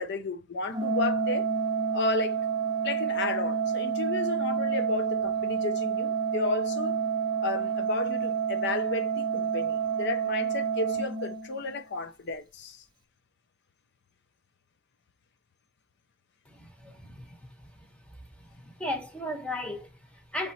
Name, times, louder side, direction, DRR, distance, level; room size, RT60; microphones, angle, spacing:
voice 1, 0.0-1.5 1.9-2.4 2.8-7.0 7.4-12.8, left 3 dB, 55° left, 0.6 m, -33 dB
Organ, 0.7-11.8, right 6 dB, 20° right, 0.6 m, -29 dB
voice 2, 16.5-17.4 18.4-20.5, left 1 dB, 5° left, 0.9 m, -36 dB
5.2 x 3.0 x 2.7 m
head